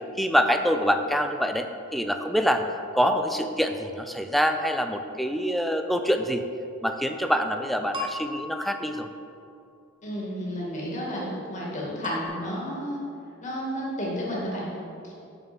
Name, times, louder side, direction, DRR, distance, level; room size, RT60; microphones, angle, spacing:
voice 1, 0.2-1.7 1.9-2.6 2.9-6.4 6.8-9.1, equal, ahead, 6 dB, 0.4 m, -25 dB
sound 1, 7.9-9.5 12.0-12.3, left 2 dB, 25° right, 0.9 m, -37 dB
voice 2, 10.0-13.0 13.4-14.7 15.0-15.1, equal, 35° left, -5 dB, 2.2 m, -31 dB
6.8 x 6.4 x 6.1 m, 2.5 s
head